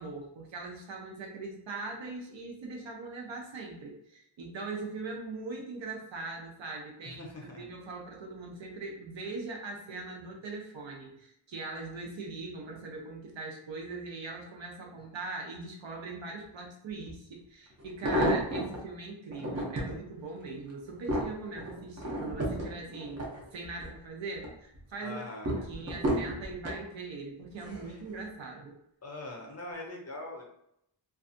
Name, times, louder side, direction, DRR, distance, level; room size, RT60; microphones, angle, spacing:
voice 1, 0.0-7.3 7.6-23.3 23.5-25.2 25.6-28.7, right 3 dB, 70° right, 0 dB, 0.7 m, -41 dB
voice 2, 7.0-7.7 25.0-25.5 27.8-28.0 29.0-30.4, left 2 dB, 35° left, 0 dB, 0.5 m, -42 dB
sound 1, 17.1-17.2 17.8-18.8 19.3-20.0 20.5-23.9 24.3-24.8 25.5-26.8 27.6-27.9 28.2-28.3, equal, 35° right, 0.6 m, -32 dB
2.6 x 2.3 x 2.5 m, 0.74 s
wide cardioid pair, 180°, 46 cm